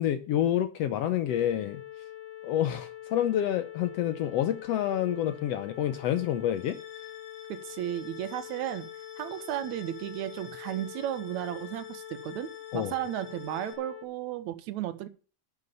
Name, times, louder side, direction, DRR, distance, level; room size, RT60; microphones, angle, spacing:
voice 1, 0.0-1.8 2.4-6.8 12.7-12.9, left 11 dB, 75° left, 1.6 m, -28 dB
sound 1, 1.3-14.0, left 11 dB, 35° left, 2.4 m, -44 dB
sound 2, 6.5-13.7, left 8 dB, 90° left, 3.4 m, -52 dB
voice 2, 7.5-8.9 9.2-15.1, right 12 dB, 75° right, 2.0 m, -34 dB
11.0 x 6.9 x 6.8 m
omnidirectional pair, 3.4 m